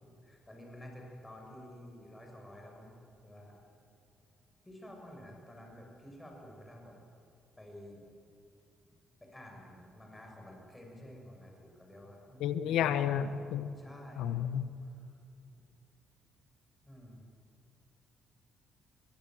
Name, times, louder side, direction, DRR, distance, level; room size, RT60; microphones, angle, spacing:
voice 1, 0.0-2.9 3.2-3.5 4.7-7.0 7.6-8.0 9.2-13.4 13.8-14.3 14.8-15.1 16.9-17.3, left 1 dB, 10° left, 0 dB, 7.1 m, -51 dB
voice 2, 12.4-13.7 14.2-14.7, left 9 dB, 90° left, 12 dB, 1.1 m, -31 dB
24.0 x 21.0 x 7.8 m, 2.5 s
cardioid pair, 90°, 0 cm